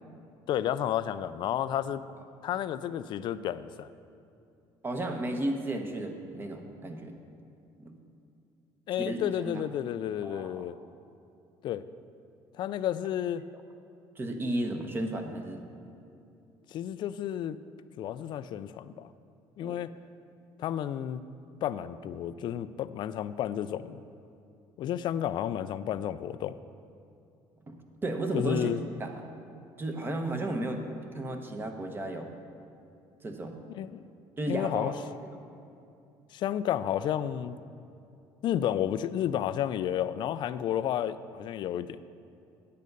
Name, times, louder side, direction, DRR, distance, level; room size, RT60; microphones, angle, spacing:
voice 1, 0.5-2.0 2.4-3.9 8.9-10.7 11.6-11.8 12.6-13.4 16.7-17.6 18.0-19.1 19.6-19.9 20.6-21.2 21.6-24.0 24.8-26.6 28.3-28.8 33.8-34.1 34.5-34.9 36.3-37.6 38.4-42.0, left 10 dB, 55° left, 14 dB, 0.4 m, -31 dB
voice 2, 4.8-7.1 7.8-7.9 8.9-9.6 10.2-10.6 14.2-15.6 19.6-19.9 27.7-27.8 28.0-28.7 29.0-29.1 29.8-30.8 31.1-32.3 33.2-33.6 34.4-34.9 35.3-35.4, right 1 dB, 20° right, 5 dB, 1.0 m, -33 dB
9.3 x 8.5 x 5.3 m, 2.6 s
cardioid pair, 130°, 10 cm